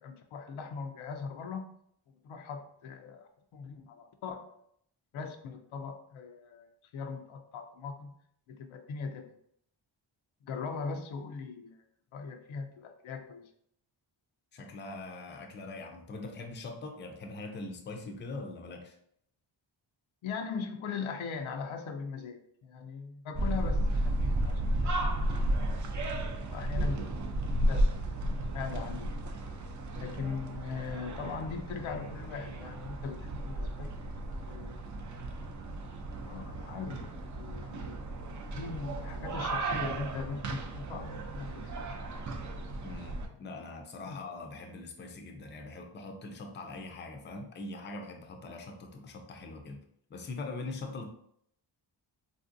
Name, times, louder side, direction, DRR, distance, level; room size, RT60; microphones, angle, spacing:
voice 1, 0.0-1.7 2.2-4.6 5.1-8.1 8.5-9.2 10.4-11.8 12.1-13.5 20.2-25.4 26.2-27.1 27.6-29.1 30.0-34.8 35.8-36.0 36.2-38.0 38.5-42.0 44.1-44.2, left 5 dB, 90° left, 5 dB, 0.6 m, -40 dB
voice 2, 14.5-19.0 42.8-49.8 50.1-51.1, left 3 dB, 25° left, 3 dB, 0.4 m, -42 dB
sound 1, 23.3-43.3, right 1 dB, 40° right, 0.4 m, -34 dB
3.4 x 2.6 x 2.5 m, 0.69 s
wide cardioid pair, 115°, 47 cm